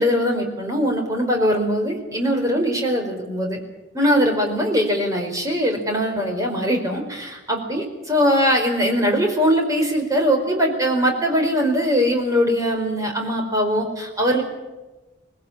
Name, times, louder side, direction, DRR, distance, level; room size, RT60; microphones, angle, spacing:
voice 1, 0.0-3.6 3.9-14.4, equal, 20° right, 2 dB, 4.6 m, -21 dB
20.5 x 20.5 x 8.7 m, 1.1 s
head